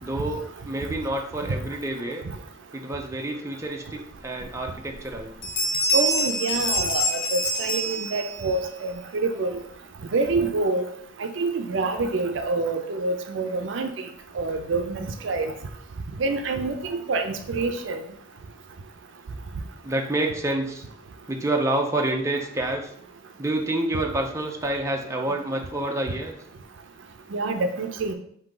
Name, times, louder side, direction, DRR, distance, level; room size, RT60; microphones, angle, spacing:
voice 1, 0.0-2.2 2.7-5.3 16.9-17.0 19.8-20.8 21.3-22.9 23.4-26.3, right 1 dB, 15° right, 1 dB, 0.5 m, -28 dB
sound 1, 4.4-4.5 4.9-5.2 5.4-8.6, left 1 dB, 55° left, 0.9 m, -26 dB
voice 2, 5.9-9.6 10.1-10.8 11.2-13.9 14.3-15.5 16.2-18.0 27.3-28.1, right 3 dB, 65° right, 7 dB, 0.5 m, -26 dB
4.9 x 2.7 x 3.8 m, 0.65 s
head